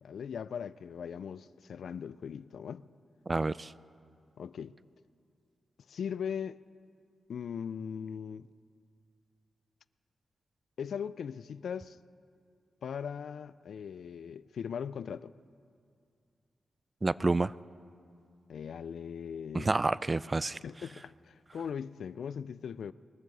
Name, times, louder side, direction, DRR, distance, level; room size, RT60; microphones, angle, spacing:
voice 1, 0.0-2.8 4.4-4.8 5.9-6.6 7.3-8.5 10.8-12.0 12.8-15.3 18.5-19.8 20.6-22.9, left 7 dB, 75° left, 0.3 m, -39 dB
voice 2, 3.3-3.7 17.0-17.5 19.5-20.6, right 3 dB, 30° right, 0.3 m, -29 dB
20.5 x 7.3 x 7.8 m
cardioid pair, 50°, 0 cm